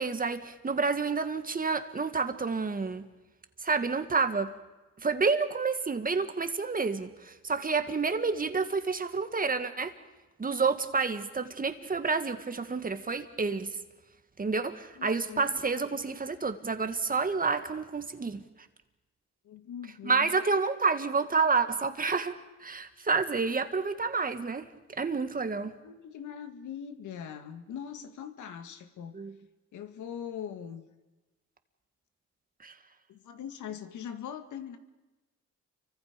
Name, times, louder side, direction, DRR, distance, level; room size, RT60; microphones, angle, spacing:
voice 1, 0.0-3.1 3.6-4.5 5.0-9.9 10.4-13.7 14.4-18.4 20.0-22.3 22.6-24.7 25.0-25.7 29.1-29.3 32.6-32.7, right 4 dB, 30° right, 8 dB, 1.9 m, -29 dB
voice 2, 15.0-15.5 19.4-20.3 25.8-29.2 29.7-30.8 33.1-34.8, left 8 dB, 75° left, 8 dB, 2.1 m, -41 dB
29.5 x 24.5 x 5.2 m, 1.1 s
cardioid pair, 90°, 30 cm